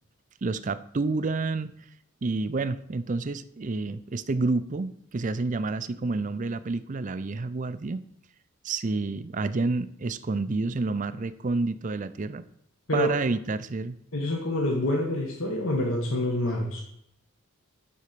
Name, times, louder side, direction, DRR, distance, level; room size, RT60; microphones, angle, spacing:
voice 1, 0.4-1.7 2.2-8.0 8.6-12.4 12.9-14.0, right 3 dB, 35° right, 14 dB, 0.4 m, -29 dB
voice 2, 14.1-16.8, left 1 dB, 70° left, 0 dB, 1.4 m, -27 dB
11.5 x 4.3 x 6.7 m, 0.76 s
head